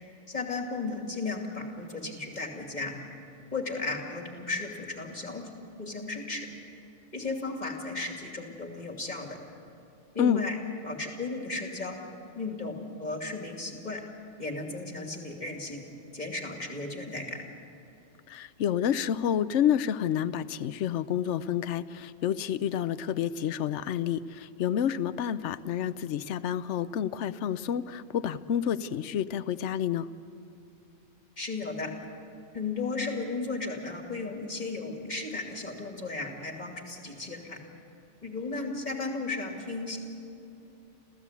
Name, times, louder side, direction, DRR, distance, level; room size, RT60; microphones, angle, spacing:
voice 1, 0.3-2.9 3.5-5.5 5.8-6.5 7.1-9.4 10.1-10.6 10.8-12.0 12.3-14.0 14.4-15.8 16.1-17.4 31.4-31.9 32.5-37.6 38.2-40.0, left 3 dB, 35° left, 2 dB, 2.8 m, -35 dB
voice 2, 18.3-30.1, left 9 dB, 75° left, 14 dB, 1.0 m, -29 dB
27.0 x 15.5 x 8.2 m, 2.8 s
omnidirectional pair, 1.2 m